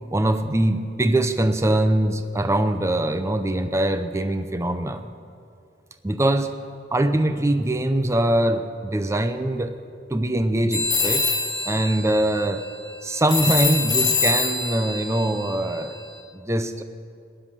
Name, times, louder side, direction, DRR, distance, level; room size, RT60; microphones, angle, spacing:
voice 1, 0.1-5.0 6.0-6.5 6.9-9.7 10.1-11.3 11.7-12.6 13.0-16.0 16.3-16.8, right 1 dB, 15° right, 9 dB, 0.6 m, -22 dB
sound 1, 10.7-16.2, left 4 dB, 20° left, 1.5 m, -25 dB
17.5 x 10.0 x 7.5 m, 2.4 s
head